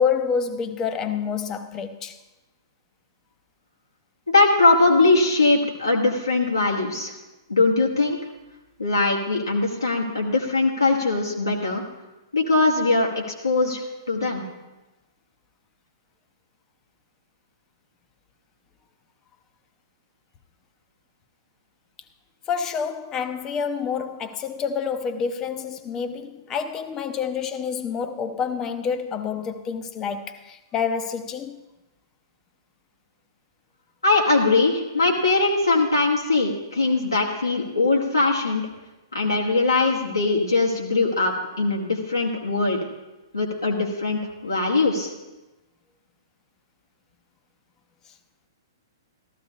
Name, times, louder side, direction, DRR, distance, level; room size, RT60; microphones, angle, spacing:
voice 1, 0.0-2.2 22.5-31.6, left 6 dB, 20° left, 0.7 m, -28 dB
voice 2, 4.3-7.2 7.5-8.2 8.8-11.8 12.3-14.4 34.0-38.6 39.1-42.8 43.3-45.1, left 3 dB, 80° left, 1.3 m, -21 dB
15.0 x 13.0 x 2.8 m
figure-of-eight pair, 115°, 2 cm